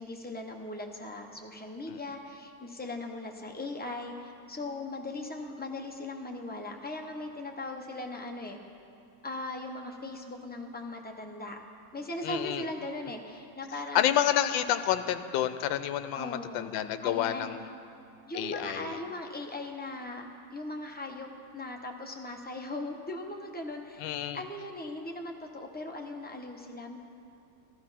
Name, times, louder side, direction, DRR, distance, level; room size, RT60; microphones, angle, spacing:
voice 1, 0.0-8.6 9.2-11.6 11.9-14.2 16.1-16.7 17.0-17.5 18.3-20.2 20.5-27.0, left 2 dB, 10° left, 1 dB, 0.4 m, -39 dB
voice 2, 12.2-12.6 13.9-17.7 18.3-19.0 24.0-24.4, left 11 dB, 85° left, 10 dB, 1.3 m, -29 dB
14.5 x 13.5 x 5.7 m, 2.7 s
omnidirectional pair, 2.1 m